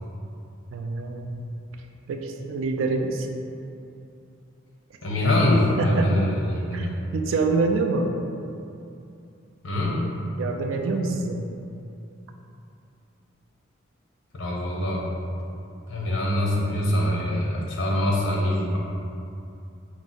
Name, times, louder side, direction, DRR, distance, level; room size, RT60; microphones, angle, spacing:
voice 1, 0.7-1.6 2.1-3.3 5.8-6.1 6.7-8.1 10.4-11.5, right 3 dB, 75° right, 4 dB, 0.4 m, -26 dB
voice 2, 5.0-6.9 9.6-10.0 14.3-15.1 15.9-18.8, left 1 dB, 70° left, -3 dB, 0.7 m, -24 dB
4.6 x 2.0 x 4.0 m, 2.6 s
head